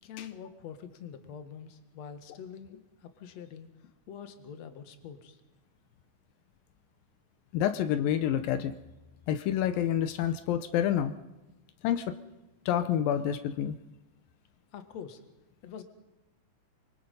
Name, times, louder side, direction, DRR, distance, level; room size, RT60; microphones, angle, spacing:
voice 1, 0.0-5.4 14.7-15.2 15.6-15.8, left 7 dB, 55° left, 8 dB, 2.6 m, -45 dB
voice 2, 7.5-8.8 9.3-11.2 11.8-12.2 12.7-13.8, left 10 dB, 85° left, 11 dB, 2.6 m, -28 dB
26.5 x 23.5 x 5.5 m, 1.1 s
omnidirectional pair, 4.0 m